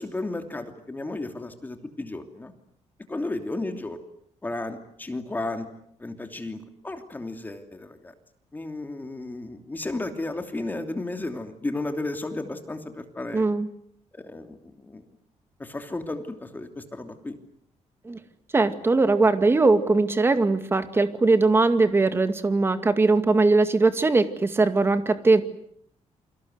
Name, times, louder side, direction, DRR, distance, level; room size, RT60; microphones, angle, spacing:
voice 1, 0.0-2.5 3.1-4.0 4.4-5.7 6.0-8.1 8.5-13.4 14.1-15.0 15.6-17.3, left 2 dB, 15° left, 6 dB, 3.0 m, -33 dB
voice 2, 13.3-13.7 18.1-18.2 18.5-25.4, right 3 dB, 20° right, 10 dB, 2.2 m, -20 dB
28.5 x 25.0 x 8.0 m, 0.67 s
cardioid pair, 155°, 12 cm